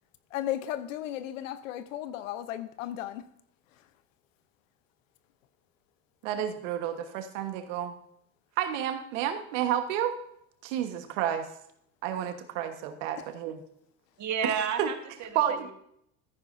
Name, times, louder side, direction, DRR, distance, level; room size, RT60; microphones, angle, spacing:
voice 1, 0.3-3.3 3.7-3.9 13.2-13.3, left 12 dB, 90° left, 0.9 m, -35 dB
voice 2, 6.2-7.9 8.6-10.2 10.6-11.4 12.0-13.6 14.4-14.5 14.8-14.9 15.3-15.7, right 10 dB, 75° right, 1.5 m, -30 dB
voice 3, 14.2-15.7, right 7 dB, 45° right, 1.7 m, -32 dB
14.0 x 9.9 x 2.7 m
supercardioid pair, 90°, 38 cm